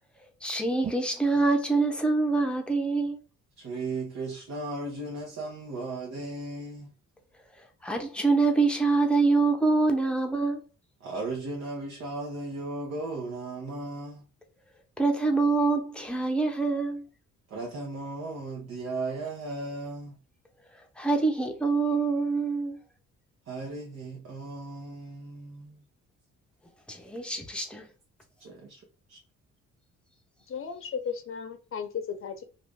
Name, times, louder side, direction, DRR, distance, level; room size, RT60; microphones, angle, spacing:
voice 1, 0.4-3.2 7.8-10.6 15.0-17.1 21.0-22.8 26.9-27.9, right 3 dB, 5° left, 0.8 m, -25 dB
voice 2, 3.6-6.9 11.0-14.2 17.5-20.2 23.5-25.8 28.4-28.8 29.1-29.2, right 2 dB, 55° right, 1.0 m, -36 dB
voice 3, 30.5-32.4, left 7 dB, 45° left, 0.7 m, -35 dB
2.8 x 2.5 x 3.5 m
cardioid pair, 90°, 30 cm